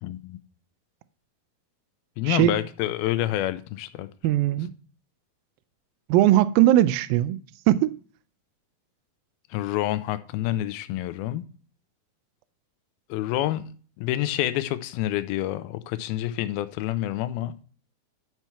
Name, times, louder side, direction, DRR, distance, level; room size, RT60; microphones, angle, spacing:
voice 1, 0.0-0.4 2.2-4.1 9.5-11.5 13.1-13.7 14.0-17.5, left 14 dB, 85° left, 2.6 m, -28 dB
voice 2, 2.3-2.6 4.2-4.7 6.1-7.4 7.7-7.9, right 14 dB, 80° right, 2.2 m, -19 dB
11.0 x 4.6 x 5.7 m
omnidirectional pair, 4.3 m